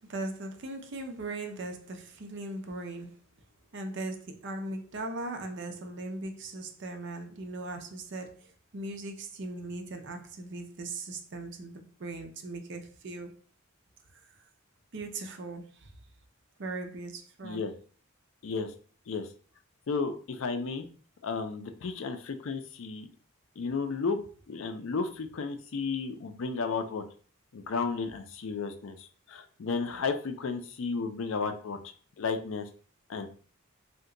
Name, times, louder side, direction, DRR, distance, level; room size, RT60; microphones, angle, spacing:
voice 1, 0.1-3.2 3.7-13.4 14.1-14.2 14.9-15.9 16.6-17.6, right 2 dB, 55° right, 0.5 m, -39 dB
voice 2, 17.4-17.7 18.4-18.7 19.1-19.3 19.9-20.8 21.2-23.1 23.6-24.2 24.5-27.0 27.5-31.8 32.2-32.7 33.1-33.3, left 4 dB, 65° left, 0.4 m, -33 dB
2.8 x 2.1 x 3.7 m
head